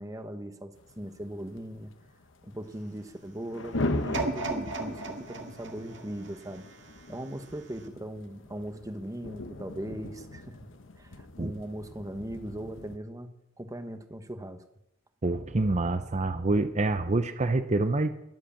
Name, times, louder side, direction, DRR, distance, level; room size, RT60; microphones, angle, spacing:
voice 1, 0.0-1.9 2.4-6.6 7.1-10.7 11.0-13.3 13.6-14.6, right 1 dB, 15° right, 8 dB, 1.2 m, -39 dB
sound 1, 0.8-13.0, left 2 dB, 70° left, 1.2 m, -39 dB
sound 2, 4.1-7.2 7.8-7.9, right 3 dB, 65° right, 2.1 m, -36 dB
voice 2, 15.2-18.1, right 2 dB, 35° right, 10 dB, 0.7 m, -26 dB
22.0 x 8.0 x 7.1 m, 0.84 s
head